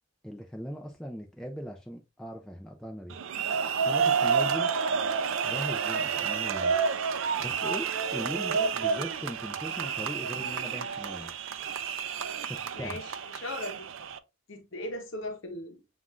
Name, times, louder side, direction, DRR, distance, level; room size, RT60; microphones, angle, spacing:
voice 1, 0.2-3.2 3.8-4.7 5.4-6.7 7.4-11.3 12.4-13.0, equal, 5° left, 0.4 m, -39 dB
sound 1, 3.1-14.2, right 6 dB, 70° right, 0.4 m, -29 dB
voice 2, 12.7-13.9 14.5-15.8, left 1 dB, 65° left, 0.8 m, -38 dB
7.2 x 2.4 x 2.4 m
head